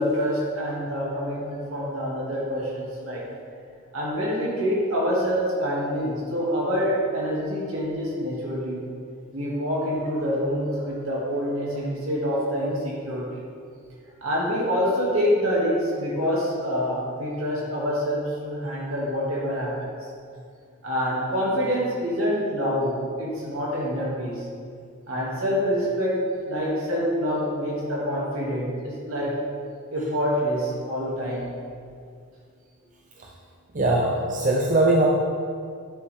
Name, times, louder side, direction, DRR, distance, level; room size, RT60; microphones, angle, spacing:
voice 1, 0.0-3.2 3.9-8.9 9.3-13.4 14.2-19.9 20.8-24.4 25.1-29.4 29.9-31.5, equal, 70° right, -5 dB, 2.4 m, -26 dB
voice 2, 33.7-35.1, right 2 dB, 35° right, -2 dB, 0.7 m, -20 dB
10.5 x 7.2 x 3.6 m, 2.3 s
head